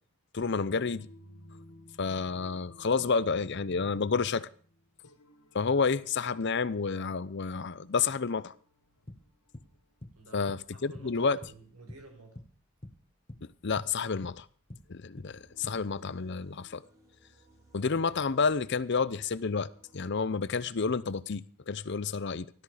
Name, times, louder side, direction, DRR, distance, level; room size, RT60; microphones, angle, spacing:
voice 1, 0.3-1.1 2.0-4.5 5.5-8.5 10.3-11.4 13.4-14.5 14.9-16.8 17.7-19.7 19.9-22.5, left 5 dB, 50° left, 0.6 m, -30 dB
sound 1, 0.6-10.5, left 1 dB, 90° left, 2.2 m, -58 dB
sound 2, 8.9-12.1 12.4-12.6 12.8-15.9, left 1 dB, 25° left, 1.4 m, -47 dB
voice 2, 10.1-12.5, right 2 dB, 80° right, 5.5 m, -51 dB
sound 3, 15.2-20.7, right 1 dB, 15° right, 2.9 m, -62 dB
16.5 x 13.0 x 5.0 m
head